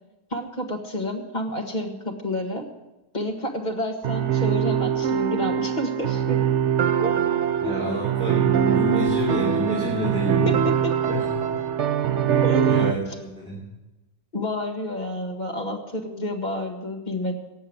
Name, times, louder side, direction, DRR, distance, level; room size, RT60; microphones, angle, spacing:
voice 1, 0.3-2.7 3.1-6.4 7.0-7.1 7.6-7.8 10.5-10.9 12.4-12.9 14.3-17.3, left 1 dB, 30° left, 2 dB, 1.8 m, -30 dB
sound 1, 4.0-12.9, right 8 dB, 55° right, 0.9 m, -23 dB
voice 2, 7.6-10.6 11.1-11.5 12.6-13.7, right 1 dB, 5° left, -5 dB, 2.6 m, -28 dB
18.0 x 7.1 x 8.0 m, 1.0 s
omnidirectional pair, 1.7 m